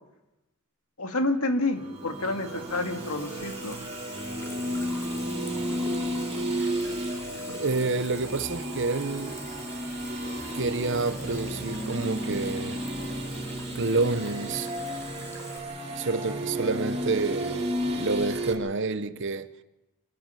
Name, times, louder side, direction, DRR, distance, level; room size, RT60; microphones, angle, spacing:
voice 1, 1.0-3.8, left 2 dB, 75° left, 2.5 m, -29 dB
sound 1, 1.6-18.5, equal, 30° right, 3.4 m, -33 dB
Water tap faucet / Sink (filling or washing), 2.0-15.6, left 1 dB, 10° left, 2.6 m, -45 dB
voice 2, 7.5-9.4 10.5-12.8 13.7-14.7 16.0-19.5, right 3 dB, 55° right, 1.0 m, -28 dB
27.5 x 13.0 x 9.3 m
head